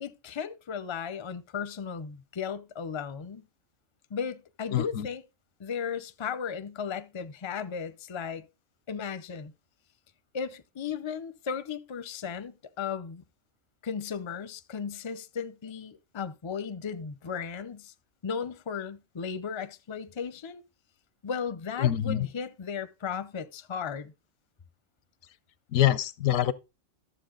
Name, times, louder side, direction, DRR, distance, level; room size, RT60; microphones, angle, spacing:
voice 1, 0.0-3.4 4.1-5.2 5.6-8.5 8.9-9.5 10.3-13.2 13.8-17.9 18.2-20.6 21.2-24.1, left 6 dB, 35° left, 0.5 m, -35 dB
voice 2, 4.7-5.1 21.8-22.3 25.7-26.5, left 12 dB, 85° left, 1.1 m, -25 dB
12.0 x 7.3 x 3.8 m
omnidirectional pair, 1.3 m